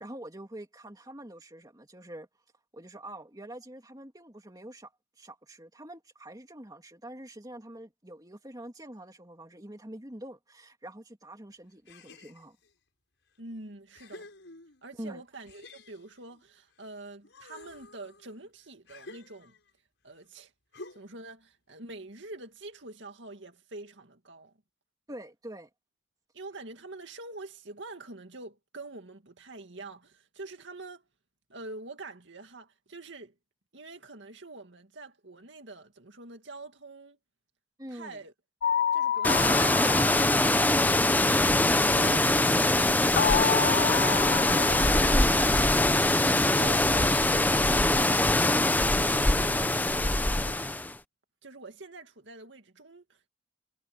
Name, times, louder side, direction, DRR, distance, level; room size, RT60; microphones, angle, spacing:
voice 1, 0.0-2.3 2.7-4.9 5.2-12.6 15.0-15.2 25.1-25.7 37.8-38.2, right 1 dB, 20° right, 2.7 m, -45 dB
sound 1, 11.9-12.7 13.4-13.5 13.9-15.0 15.5-16.9 17.2-19.8 20.7-21.3, left 2 dB, 65° left, 7.7 m, -50 dB
voice 2, 13.4-14.3 14.8-19.5 20.0-20.5 20.9-24.5 26.3-31.0 31.5-33.3 33.7-37.2 37.9-38.3 38.9-40.9 41.9-46.1 46.5-50.6 51.4-53.3, right 2 dB, 65° right, 2.3 m, -45 dB
sound 2, 38.6-41.5 43.2-46.0, left 8 dB, 45° left, 0.3 m, -30 dB
sound 3, 39.2-50.9, left 2 dB, 10° left, 0.7 m, -23 dB
head